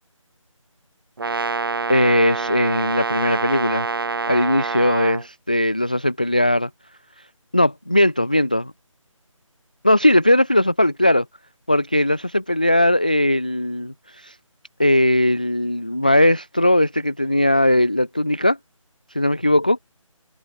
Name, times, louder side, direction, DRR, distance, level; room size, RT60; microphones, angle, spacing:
Brass instrument, 1.2-5.2, right 4 dB, 40° right, 3.2 m, -26 dB
voice 1, 1.9-3.9 4.3-6.7 7.5-8.7 9.8-11.2 11.7-14.4 14.8-18.6 19.1-19.8, left 1 dB, 15° left, 0.5 m, -19 dB
figure-of-eight pair, 170°, 17 cm